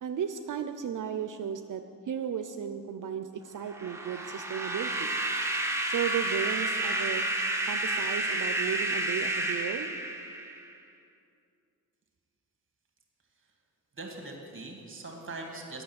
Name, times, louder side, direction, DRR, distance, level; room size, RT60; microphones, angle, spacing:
voice 1, 0.0-5.2 5.9-7.2 7.7-9.9, right 8 dB, 60° right, 8 dB, 0.5 m, -35 dB
sound 1, 3.7-10.7, right 2 dB, 10° right, 0.9 m, -30 dB
voice 2, 13.9-15.8, right 2 dB, 35° right, 2 dB, 1.8 m, -42 dB
10.0 x 6.2 x 8.7 m, 2.5 s
wide cardioid pair, 140°, 36 cm